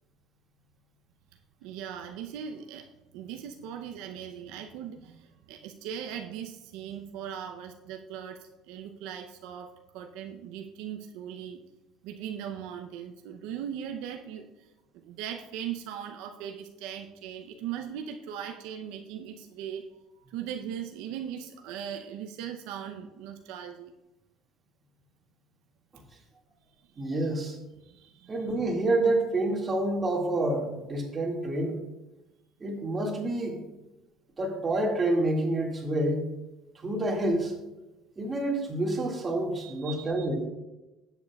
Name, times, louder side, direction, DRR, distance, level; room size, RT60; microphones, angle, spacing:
voice 1, 1.6-11.6 12.0-14.7 14.9-19.8 20.3-23.9 26.9-27.1 27.8-28.5 39.5-40.3, right 9 dB, 80° right, 4 dB, 0.6 m, -39 dB
voice 2, 27.0-27.6 28.3-31.8 32.6-33.6 34.4-36.3 36.8-37.5 38.2-40.4, right 2 dB, 25° right, -1 dB, 2.0 m, -28 dB
13.5 x 8.0 x 2.3 m, 1.0 s
cardioid pair, 125°, 0 cm